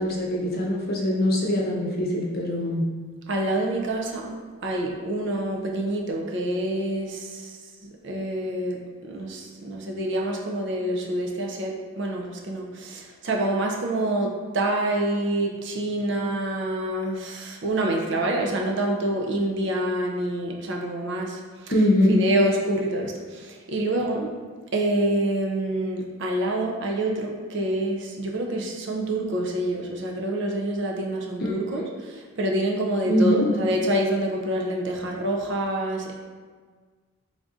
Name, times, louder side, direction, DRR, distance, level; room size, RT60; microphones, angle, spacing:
voice 1, 0.0-2.8 21.7-22.2 31.4-31.9 33.1-33.5, left 1 dB, 45° left, -2 dB, 0.6 m, -23 dB
voice 2, 3.3-4.3 4.6-7.6 8.0-21.7 22.1-24.4 24.7-36.1, right 1 dB, 55° right, 0 dB, 0.5 m, -27 dB
3.5 x 2.6 x 3.7 m, 1.5 s
head